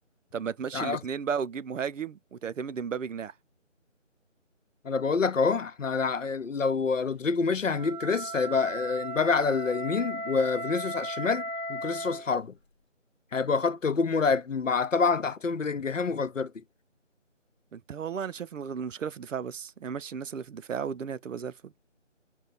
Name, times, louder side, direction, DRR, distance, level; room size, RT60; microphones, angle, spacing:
voice 1, 0.3-3.3 17.7-21.7, right 7 dB, 80° right, 0.5 m, -34 dB
voice 2, 4.8-11.4 11.7-12.5 13.3-16.5, left 5 dB, 85° left, 0.9 m, -27 dB
Wind instrument woodwind instrument, 7.6-12.3, right 1 dB, 55° left, 1.0 m, -36 dB
5.3 x 2.3 x 3.9 m
figure-of-eight pair, 175°, 38 cm